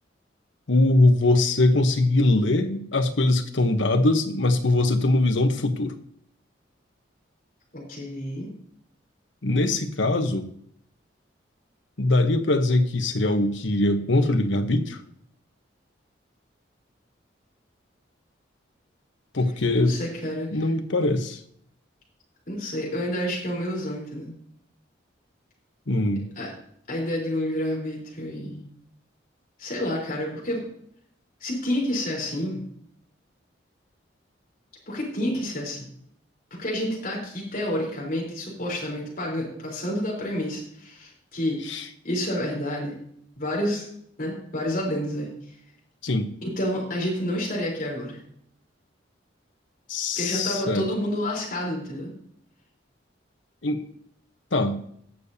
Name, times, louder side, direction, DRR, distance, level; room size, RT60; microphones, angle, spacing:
voice 1, 0.7-5.9 9.4-10.5 12.0-15.0 19.3-19.9 20.5-21.4 25.9-26.2 41.7-41.8 46.0-46.3 49.9-50.9 53.6-53.8 54.5-54.8, left 2 dB, 80° left, 7 dB, 1.1 m, -22 dB
voice 2, 7.7-8.5 19.7-20.7 22.5-24.3 26.4-26.5 26.9-28.6 29.6-30.6 31.4-32.6 34.9-35.9 36.6-41.6 42.0-43.0 43.4-43.9 44.2-45.3 46.4-48.2 50.2-52.1, left 1 dB, 45° left, -3 dB, 4.1 m, -29 dB
18.5 x 6.8 x 2.8 m, 0.67 s
head